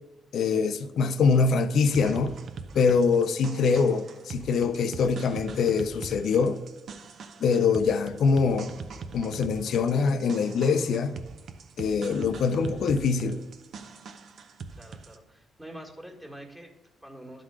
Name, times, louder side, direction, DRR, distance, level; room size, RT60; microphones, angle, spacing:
voice 1, 0.3-2.4 2.7-6.6 7.4-8.7 9.1-11.2 11.8-13.4, left 5 dB, 65° left, 0.6 m, -24 dB
sound 1, 1.9-15.2, right 5 dB, 60° right, 0.7 m, -42 dB
voice 2, 14.7-17.4, right 1 dB, 10° right, 1.7 m, -46 dB
11.5 x 3.9 x 4.8 m
cardioid pair, 90°, 0 cm